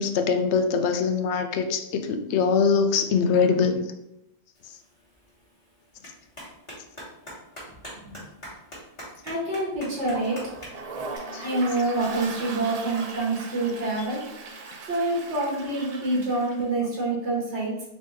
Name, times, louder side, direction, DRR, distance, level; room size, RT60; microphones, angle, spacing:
voice 1, 0.0-3.9 11.3-11.5, left 5 dB, 80° left, 6 dB, 0.9 m, -23 dB
Clapping, 4.5-11.2, equal, 30° left, 1.5 m, -45 dB
voice 2, 7.9-8.3 9.2-10.5 11.4-14.2 14.8-17.7, right 2 dB, 90° right, -5 dB, 1.6 m, -27 dB
Toilet flush, 9.9-16.7, right 3 dB, 45° right, 0.5 m, -39 dB
4.1 x 3.4 x 3.2 m, 0.83 s
omnidirectional pair, 1.1 m